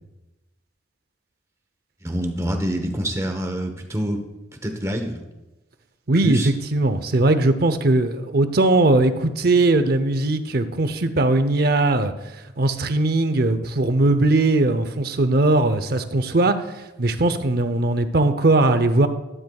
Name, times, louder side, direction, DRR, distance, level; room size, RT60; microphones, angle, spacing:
voice 1, 2.0-4.2 4.5-5.2 6.2-6.5, equal, 15° right, 5 dB, 1.0 m, -26 dB
voice 2, 6.1-19.1, right 2 dB, 55° right, 10 dB, 0.7 m, -20 dB
12.5 x 12.0 x 2.4 m, 1.0 s
head